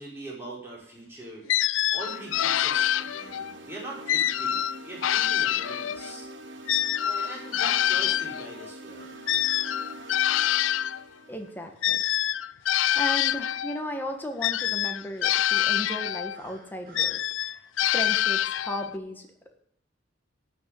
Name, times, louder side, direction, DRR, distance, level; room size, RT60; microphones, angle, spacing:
voice 1, 0.0-1.4 1.9-6.3 7.0-9.1, right 1 dB, 10° right, -5 dB, 4.9 m, -41 dB
sound 1, 1.5-3.5 4.1-6.2 6.7-11.0 11.8-13.8 14.4-16.4 16.9-18.9, left 12 dB, 85° left, 0.4 m, -26 dB
sound 2, 2.0-12.1, right 1 dB, 75° right, 1.2 m, -45 dB
sound 3, 3.2-4.6 9.0-10.9 15.3-17.2, right 3 dB, 50° right, 3.2 m, -54 dB
voice 2, 11.3-12.0 12.9-19.3, left 1 dB, 10° left, 3 dB, 1.6 m, -35 dB
13.0 x 6.5 x 8.4 m, 0.69 s
head